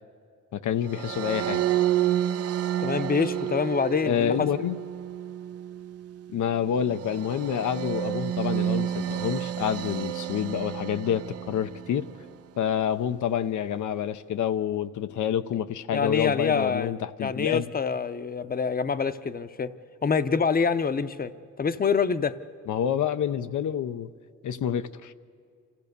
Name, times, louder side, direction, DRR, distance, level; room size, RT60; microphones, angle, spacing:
voice 1, 0.5-1.6 4.0-4.8 6.3-12.1 12.6-17.7 22.7-24.1 24.4-25.1, left 9 dB, 80° left, 10 dB, 0.7 m, -28 dB
sound 1, 0.9-12.2, right 11 dB, 55° right, 0.4 m, -30 dB
voice 2, 2.8-4.5 15.9-16.9 17.2-19.7 20.0-21.3 21.6-22.3, left 5 dB, 30° left, 12 dB, 0.7 m, -26 dB
27.0 x 15.0 x 6.7 m, 2.3 s
cardioid pair, 105°, 30 cm